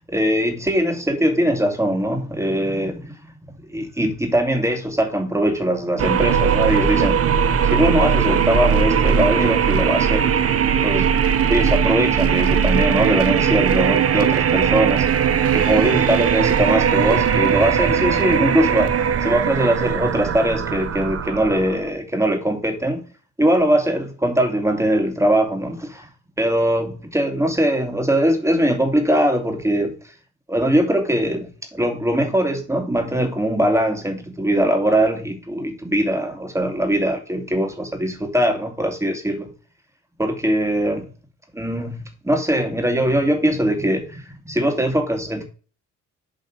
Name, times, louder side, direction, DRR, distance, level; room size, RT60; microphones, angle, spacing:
voice 1, 0.1-3.2 3.7-7.2 7.6-10.3 10.8-11.1 11.5-15.1 15.5-23.0 23.4-26.1 26.4-29.9 30.5-39.5 40.2-41.1 41.5-45.4, right 1 dB, 10° right, 2.4 m, -21 dB
sound 1, 6.0-21.9, right 7 dB, 50° right, 1.0 m, -19 dB
7.7 x 4.1 x 6.2 m
cardioid pair, 90°, 30 cm